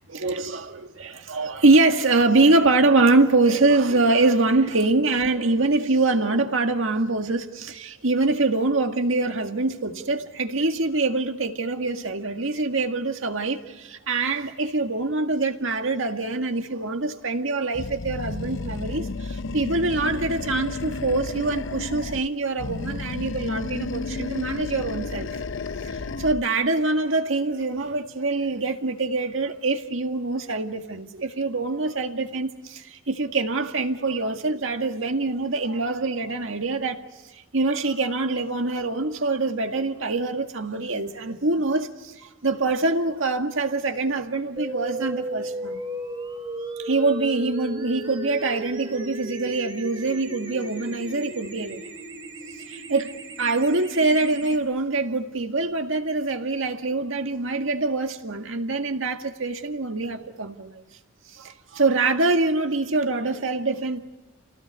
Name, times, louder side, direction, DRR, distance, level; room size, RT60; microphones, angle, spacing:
voice 1, 0.1-25.3 25.8-37.1 37.5-45.8 46.8-51.8 52.7-60.8 61.3-64.0, right 3 dB, 70° right, 2.0 m, -24 dB
Animal, 17.7-22.3 22.6-26.5, left 3 dB, 65° left, 0.7 m, -32 dB
sound 1, 44.6-54.6, right 1 dB, 25° right, 2.8 m, -36 dB
30.0 x 19.0 x 8.3 m
head